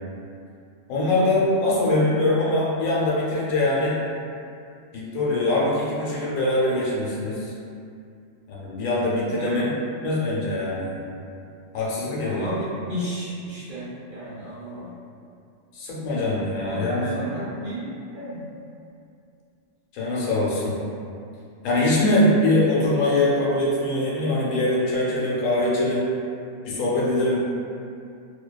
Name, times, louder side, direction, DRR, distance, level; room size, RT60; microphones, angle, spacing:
voice 1, 0.9-3.9 4.9-7.5 8.5-9.7 10.0-11.1 11.7-12.5 15.7-17.2 19.9-20.8 21.6-26.1 26.6-27.4, left 1 dB, 90° left, -6 dB, 1.0 m, -23 dB
voice 2, 9.3-9.7 12.2-14.9 16.7-18.5, equal, 65° right, -11 dB, 0.5 m, -33 dB
2.6 x 2.2 x 2.2 m, 2.5 s
omnidirectional pair, 1.3 m